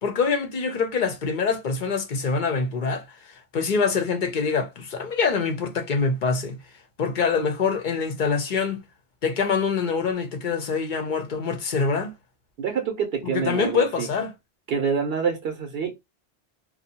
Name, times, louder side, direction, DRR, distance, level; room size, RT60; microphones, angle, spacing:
voice 1, 0.0-6.6 7.0-8.8 9.2-12.1 13.3-14.3, left 5 dB, 55° left, 0.6 m, -25 dB
voice 2, 12.6-14.1 14.7-15.9, right 6 dB, 70° right, 0.8 m, -26 dB
2.6 x 2.1 x 2.7 m
omnidirectional pair, 1.1 m